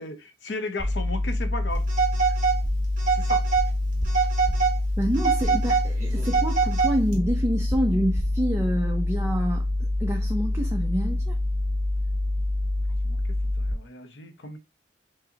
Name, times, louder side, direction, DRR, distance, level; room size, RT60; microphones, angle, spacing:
voice 1, 0.0-1.9 2.2-2.4 3.1-3.5 13.0-13.2 13.6-14.6, left 2 dB, 75° left, 0.7 m, -35 dB
sound 1, 0.8-13.7, left 1 dB, 35° left, 0.8 m, -26 dB
Telephone, 1.9-2.6 3.0-3.7 4.1-4.8 5.1-7.2, right 6 dB, 45° right, 1.1 m, -24 dB
voice 2, 5.0-11.4, equal, 15° right, 0.4 m, -27 dB
4.6 x 2.0 x 2.8 m
head